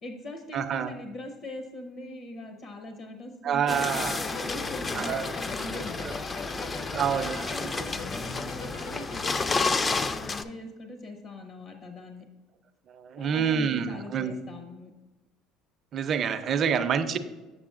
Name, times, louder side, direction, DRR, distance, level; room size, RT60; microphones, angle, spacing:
voice 1, 0.0-6.0 6.5-12.3 13.2-14.9, left 1 dB, 60° left, 4 dB, 0.7 m, -42 dB
voice 2, 0.5-0.9 3.4-4.2 4.9-5.3 6.0-6.1 6.9-7.4 12.9-14.3 15.9-17.2, right 7 dB, 50° right, 10 dB, 0.5 m, -27 dB
sound 1, 3.7-10.4, left 3 dB, 25° left, 0.3 m, -31 dB
sound 2, 3.8-9.4, left 4 dB, 80° left, 1.0 m, -41 dB
6.9 x 6.7 x 2.4 m, 1.2 s
supercardioid pair, 90°, 0 cm